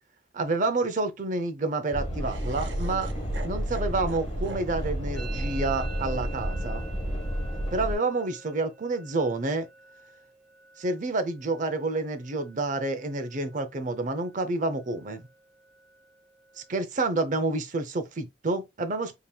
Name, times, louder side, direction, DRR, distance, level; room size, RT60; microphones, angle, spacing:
voice 1, 0.3-3.1 3.4-6.8 7.7-9.7 10.8-15.2 16.7-19.2, right 2 dB, 45° right, 0.6 m, -29 dB
sound 1, 1.9-7.9, equal, 35° left, 1.4 m, -31 dB
Laughter, 2.2-8.3, right 3 dB, 85° right, 0.7 m, -46 dB
Musical instrument, 5.2-12.8 13.1-13.6 13.9-14.5 14.8-16.8, right 5 dB, 5° left, 0.5 m, -49 dB
5.1 x 2.9 x 2.2 m
head